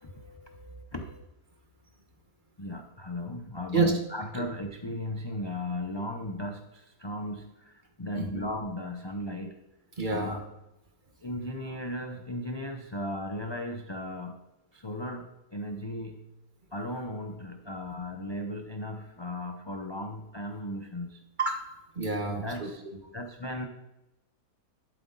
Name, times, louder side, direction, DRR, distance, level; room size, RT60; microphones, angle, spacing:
voice 1, 0.0-0.8 3.7-3.9 4.4-4.5 8.1-8.3 10.0-10.4 21.4-21.7 21.9-23.0, right 3 dB, 35° right, 4 dB, 1.3 m, -30 dB
voice 2, 2.6-9.6 10.1-10.4 11.2-14.4 14.7-16.2 16.7-21.2 22.3-22.8 23.1-23.7, left 1 dB, 30° left, 4 dB, 0.5 m, -36 dB
12.0 x 7.7 x 4.0 m, 0.94 s
omnidirectional pair, 1.5 m